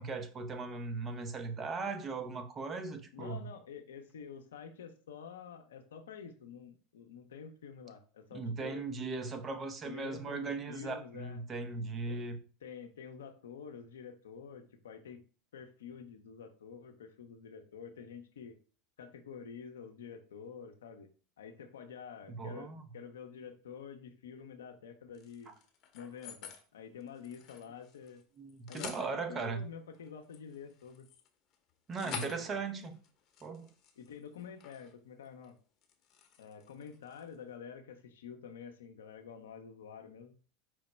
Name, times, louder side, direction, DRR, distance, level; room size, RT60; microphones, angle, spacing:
voice 1, 0.0-3.5 8.3-12.4 22.3-22.9 28.4-29.7 31.9-33.0 33.4-33.7, right 4 dB, 30° right, 0.7 m, -38 dB
voice 2, 3.1-8.9 9.8-11.4 12.1-12.2 12.6-15.2 15.5-18.6 19.0-21.1 21.4-25.5 25.9-28.2 28.7-31.1 32.0-32.6 34.0-35.6 36.4-40.3, left 7 dB, 85° left, 0.6 m, -48 dB
sound 1, 25.1-26.6 27.0-28.2 28.5-29.1 29.9-34.9 35.3-35.5 35.8-37.4, left 7 dB, 45° left, 0.8 m, -49 dB
4.6 x 2.1 x 4.1 m
hypercardioid pair, 95°, 0 cm